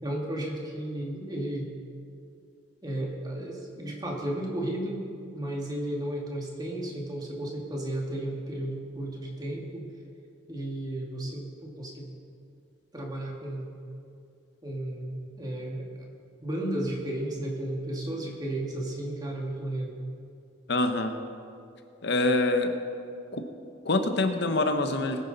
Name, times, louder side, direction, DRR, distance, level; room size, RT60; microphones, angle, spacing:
voice 1, 0.0-1.7 2.8-5.1 5.3-9.9 10.5-12.1 12.9-13.7 14.6-15.9 16.4-20.0, right 1 dB, 20° right, -1 dB, 2.0 m, -33 dB
voice 2, 20.7-21.1 22.0-22.7 23.3-23.4 23.8-25.2, left 2 dB, 55° left, 7 dB, 1.0 m, -25 dB
21.0 x 9.5 x 4.1 m, 2.5 s
head